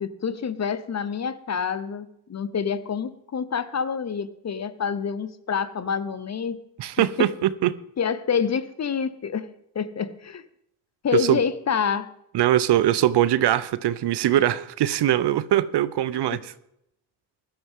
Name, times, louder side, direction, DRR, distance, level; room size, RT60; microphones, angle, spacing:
voice 1, 0.0-6.6 7.2-7.3 8.0-9.5 9.7-10.4 11.0-12.1 16.3-16.4, left 6 dB, 35° left, 0.8 m, -27 dB
voice 2, 6.8-7.7 11.1-11.4 12.3-16.5, right 12 dB, 65° right, 0.7 m, -22 dB
16.5 x 11.5 x 3.7 m
cardioid pair, 80°, 44 cm